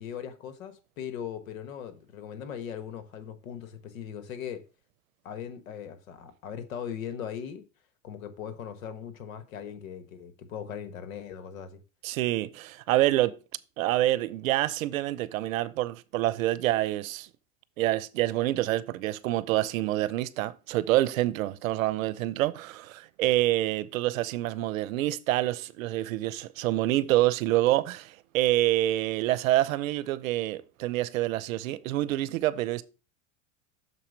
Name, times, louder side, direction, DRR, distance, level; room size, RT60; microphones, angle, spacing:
voice 1, 0.0-4.6 5.2-7.6 8.0-11.8, left 8 dB, 80° left, 1.3 m, -39 dB
voice 2, 12.0-13.3 13.8-17.3 17.8-32.8, right 15 dB, 80° right, 0.7 m, -27 dB
6.6 x 4.2 x 5.2 m
supercardioid pair, 110°, 40 cm